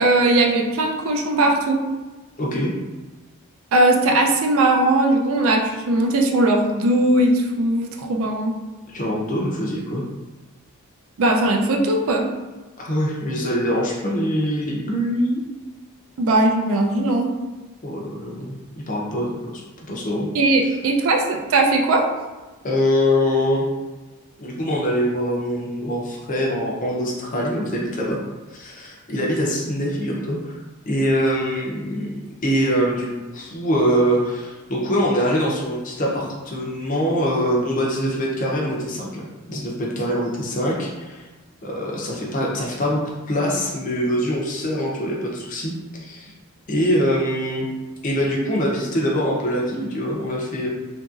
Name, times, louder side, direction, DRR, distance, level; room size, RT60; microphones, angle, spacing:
voice 1, 0.0-1.9 3.7-8.5 11.2-12.3 16.2-17.3 20.3-22.1, right 2 dB, 60° right, 2 dB, 0.4 m, -19 dB
voice 2, 2.4-2.7 8.9-10.0 12.8-15.4 17.8-18.6 18.9-19.6 19.9-20.3 22.6-23.6 24.4-28.2 28.5-30.6 30.9-32.1 32.4-41.3 41.6-45.7 46.0-46.3 46.7-47.6 48.0-50.7, equal, 35° left, -3 dB, 0.5 m, -23 dB
2.8 x 2.6 x 2.4 m, 1.2 s
head